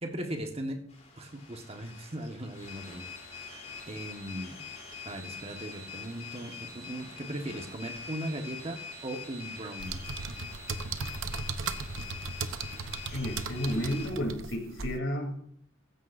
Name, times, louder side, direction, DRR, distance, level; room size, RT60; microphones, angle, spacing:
voice 1, 0.0-0.9 1.2-4.6 5.0-10.0, right 1 dB, 30° right, 4 dB, 1.6 m, -38 dB
sound 1, 0.9-14.1, left 4 dB, 35° left, 3.5 m, -44 dB
sound 2, 9.8-15.0, right 4 dB, 85° right, 0.9 m, -37 dB
voice 2, 13.1-15.4, equal, 75° left, 2 dB, 3.5 m, -32 dB
16.0 x 14.5 x 2.7 m, 0.68 s
head